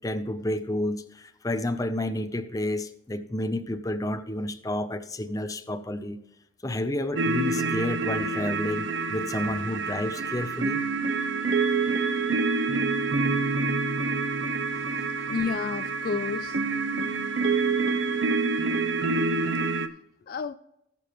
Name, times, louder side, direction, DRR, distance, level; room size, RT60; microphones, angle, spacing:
voice 1, 0.0-6.2 6.6-10.8 14.7-15.3, left 1 dB, 20° left, 10 dB, 0.7 m, -30 dB
sound 1, 7.2-19.9, right 3 dB, 75° right, 0.7 m, -27 dB
voice 2, 13.3-13.6 15.3-16.6 20.3-20.5, left 5 dB, 50° left, 12 dB, 0.3 m, -31 dB
19.0 x 6.9 x 3.1 m, 0.83 s
head